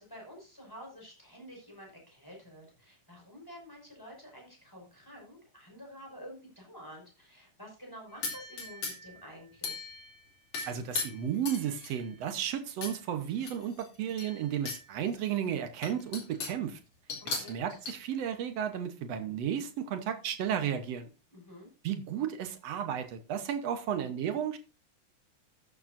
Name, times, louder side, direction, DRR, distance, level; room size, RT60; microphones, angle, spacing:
voice 1, 0.0-9.9 17.3-17.5 21.3-21.7, equal, 5° left, 5.1 m, -50 dB
sound 1, 8.2-9.2 9.6-10.2 10.5-12.1 12.8-13.0 13.3-14.8 15.2-15.3 15.8-16.6 17.1-17.9, left 4 dB, 55° left, 3.9 m, -38 dB
voice 2, 10.7-16.8 17.3-21.1 21.8-24.6, right 9 dB, 65° right, 1.8 m, -33 dB
13.5 x 9.0 x 2.6 m
omnidirectional pair, 3.7 m